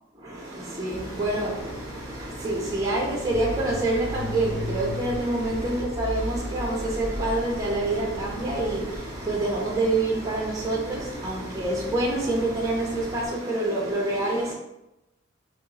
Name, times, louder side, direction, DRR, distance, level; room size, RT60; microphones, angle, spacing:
voice 1, 0.1-14.5, right 2 dB, 15° right, 0.8 m, -27 dB
sound 1, 0.9-13.3, equal, 25° left, 0.9 m, -41 dB
sound 2, 3.3-9.0, left 1 dB, 55° left, 1.0 m, -35 dB
4.2 x 3.0 x 3.0 m
head